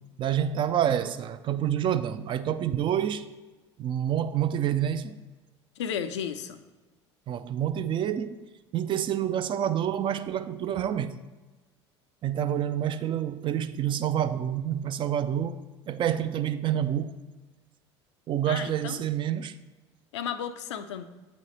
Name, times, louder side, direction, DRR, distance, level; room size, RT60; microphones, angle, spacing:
voice 1, 0.2-3.3 3.8-5.2 7.3-8.5 8.7-11.2 12.2-17.2 18.3-19.6, right 10 dB, 35° right, 0.3 m, -28 dB
voice 2, 5.8-6.6 18.5-19.0 20.1-21.1, left 8 dB, 75° left, 0.4 m, -33 dB
7.9 x 4.1 x 3.1 m
figure-of-eight pair, 70°, 15 cm